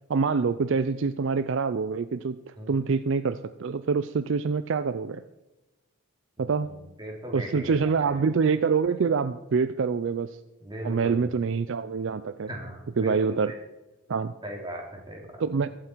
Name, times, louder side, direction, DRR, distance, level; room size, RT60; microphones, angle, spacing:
voice 1, 0.1-5.2 6.4-6.7 7.3-10.4 10.8-12.5 13.0-13.5 14.1-14.3 15.4-15.7, right 5 dB, 55° right, 12 dB, 0.4 m, -26 dB
voice 2, 6.4-8.1 10.6-11.3 12.5-13.3 14.4-15.4, equal, 20° right, -1 dB, 2.9 m, -38 dB
22.5 x 7.6 x 4.5 m, 1.0 s
head